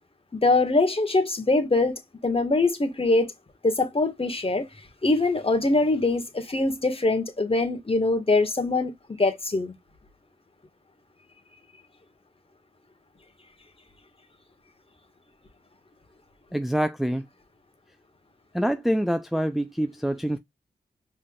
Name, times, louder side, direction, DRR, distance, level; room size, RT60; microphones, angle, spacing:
voice 1, 0.3-3.3 3.6-4.7 5.0-9.7, left 2 dB, 35° left, 1.5 m, -23 dB
voice 2, 16.5-17.3 18.5-20.4, equal, ahead, 0.5 m, -25 dB
5.4 x 3.4 x 2.3 m
cardioid pair, 60°, 17 cm